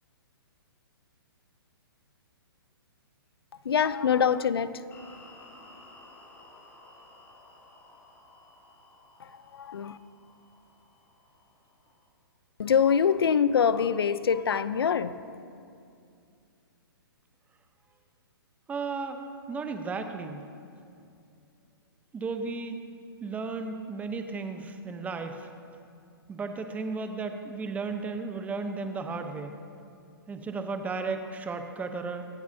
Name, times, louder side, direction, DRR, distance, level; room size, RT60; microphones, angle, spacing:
voice 1, 3.6-4.8 9.2-10.0 12.6-15.3, left 7 dB, 75° left, 15 dB, 0.6 m, -25 dB
sound 1, 4.9-12.1, left 2 dB, 20° left, 1.8 m, -54 dB
voice 2, 18.7-19.2 19.5-20.4 22.1-22.8 23.2-25.5 26.3-29.6 30.3-32.3, right 4 dB, 10° right, 7 dB, 0.8 m, -34 dB
25.0 x 9.4 x 2.8 m, 2.4 s
hypercardioid pair, 135°, 13 cm